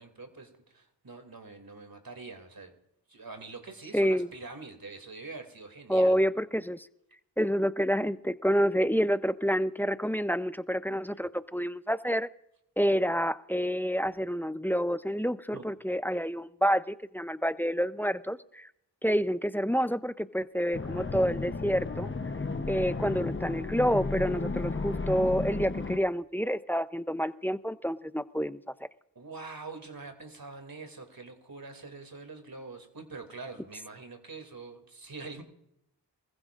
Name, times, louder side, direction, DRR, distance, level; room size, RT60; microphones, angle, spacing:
voice 1, 0.0-2.7 3.1-6.2 15.5-15.6 29.1-35.4, right 3 dB, 55° right, 6 dB, 2.6 m, -45 dB
voice 2, 3.9-4.3 5.9-6.9 7.4-12.3 12.8-18.7 19.0-22.1 22.7-28.6, equal, 5° left, 14 dB, 0.5 m, -28 dB
sound 1, 20.7-26.0, left 3 dB, 30° left, 0.9 m, -33 dB
24.5 x 15.5 x 2.5 m, 0.80 s
cardioid pair, 45°, 42 cm